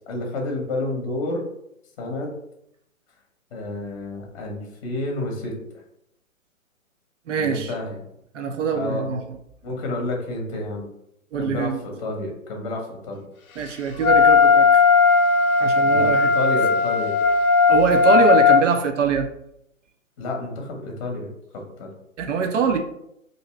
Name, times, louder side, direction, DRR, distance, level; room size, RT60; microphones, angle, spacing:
voice 1, 0.1-1.4 2.0-2.3 3.5-5.8 7.4-8.0 8.8-9.0 9.6-10.9 11.4-13.3 15.9-17.1 20.2-21.9, left 2 dB, 25° left, 1 dB, 0.9 m, -30 dB
voice 2, 7.3-7.7 8.3-9.2 11.3-11.8 13.6-14.8 15.6-16.3 17.7-19.3 22.2-22.8, right 6 dB, 60° right, 5 dB, 0.7 m, -23 dB
Wind instrument woodwind instrument, 14.0-18.6, left 5 dB, 85° left, 0.6 m, -16 dB
2.8 x 2.7 x 4.2 m, 0.76 s
figure-of-eight pair, 135°, 42 cm